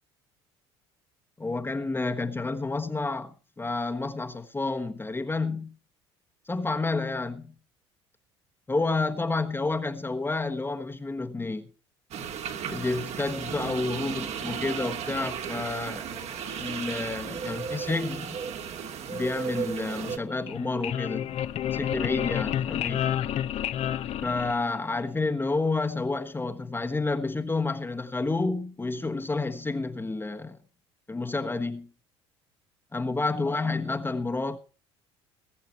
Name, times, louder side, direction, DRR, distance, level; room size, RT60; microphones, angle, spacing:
voice 1, 1.4-5.7 6.5-7.5 8.7-11.7 12.7-18.4 19.1-21.3 21.7-23.1 24.2-30.6 31.1-31.9 32.9-34.6, left 3 dB, 15° left, 1.4 m, -30 dB
sound 1, 12.1-20.2, right 7 dB, 50° right, 2.3 m, -35 dB
sound 2, 20.3-25.0, left 10 dB, 50° left, 1.0 m, -30 dB
20.0 x 8.2 x 4.6 m
hypercardioid pair, 65°, 14 cm